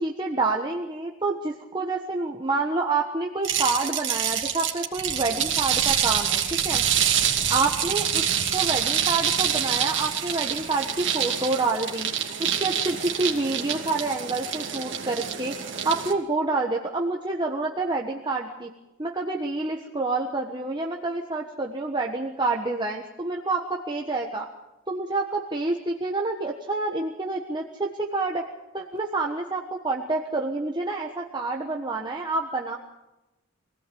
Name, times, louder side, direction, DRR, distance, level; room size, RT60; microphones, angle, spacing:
voice 1, 0.0-6.8 7.5-8.2 8.5-12.1 12.4-15.6 15.8-18.7 19.0-24.5 24.9-28.4 28.7-32.8, right 3 dB, 20° right, 0 dB, 1.3 m, -28 dB
sound 1, 3.4-16.1, right 9 dB, 60° right, 2.6 m, -26 dB
24.5 x 17.0 x 8.6 m, 1.0 s
head